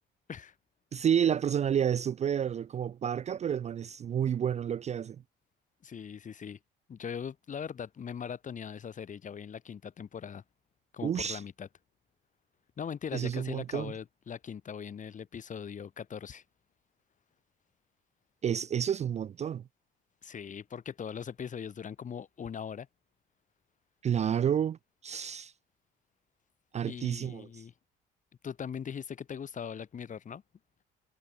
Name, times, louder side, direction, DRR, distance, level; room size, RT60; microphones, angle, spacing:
voice 1, 0.9-5.2 11.0-11.4 13.1-13.9 18.4-19.7 24.0-25.5 26.7-27.6, right 9 dB, 35° right, 0.4 m, -30 dB
voice 2, 5.8-6.6 6.9-10.4 10.9-11.7 12.8-16.4 20.2-22.9 26.8-27.7 28.4-30.4, left 7 dB, 40° left, 1.2 m, -40 dB
supercardioid pair, 85°, 20 cm